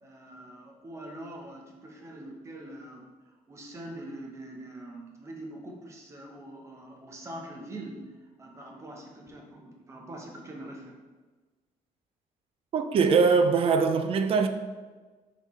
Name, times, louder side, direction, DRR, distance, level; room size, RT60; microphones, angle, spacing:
voice 1, 0.0-11.0, right 1 dB, 20° right, 0.8 m, -44 dB
voice 2, 12.7-14.5, right 5 dB, 40° right, 0.4 m, -22 dB
5.8 x 5.5 x 3.1 m
cardioid pair, 175°, 15 cm